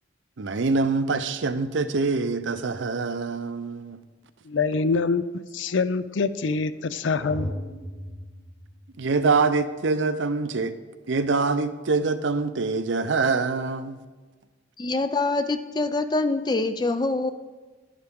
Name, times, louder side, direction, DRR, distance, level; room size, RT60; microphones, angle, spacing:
voice 1, 0.4-4.0 9.0-10.7 11.1-14.0, right 4 dB, 80° right, 0.6 m, -25 dB
voice 2, 4.5-7.5, left 4 dB, 85° left, 0.5 m, -25 dB
sound 1, 7.2-9.3, equal, 40° left, 2.7 m, -36 dB
voice 3, 14.8-17.3, left 2 dB, 20° left, 0.4 m, -25 dB
11.0 x 10.5 x 3.7 m
head